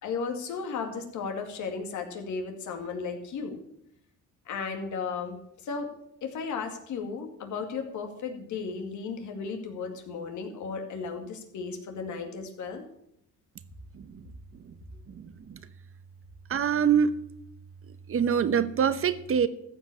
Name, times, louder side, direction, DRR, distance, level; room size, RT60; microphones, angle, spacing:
voice 1, 0.0-3.6 4.5-5.9 6.2-12.8, left 5 dB, 75° left, 4 dB, 2.3 m, -35 dB
voice 2, 13.9-14.2 14.6-14.7 15.1-15.6 16.5-17.1 18.1-19.5, right 7 dB, 45° right, 14 dB, 1.0 m, -25 dB
14.5 x 5.3 x 8.5 m, 0.75 s
cardioid pair, 90°, 30 cm